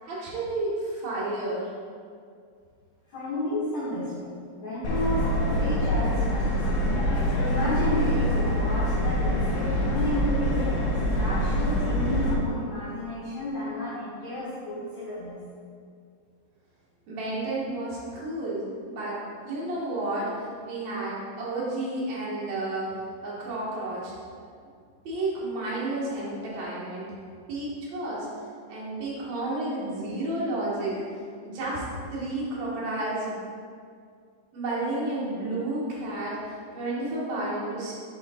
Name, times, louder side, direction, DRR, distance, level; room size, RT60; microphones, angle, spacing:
voice 1, 0.0-1.7 17.1-22.9 23.2-24.1 25.0-27.1 27.5-28.3 28.7-31.0 31.4-31.8 32.1-33.3 34.5-37.9, right 2 dB, 90° right, -7 dB, 1.5 m, -31 dB
voice 2, 3.1-4.3 4.5-7.1 7.4-15.4, left 1 dB, 70° left, -9 dB, 1.7 m, -32 dB
Subway metro underground, 4.8-12.3, equal, 90° left, 3.4 m, -25 dB
7.6 x 4.5 x 4.2 m, 2.2 s
omnidirectional pair, 5.3 m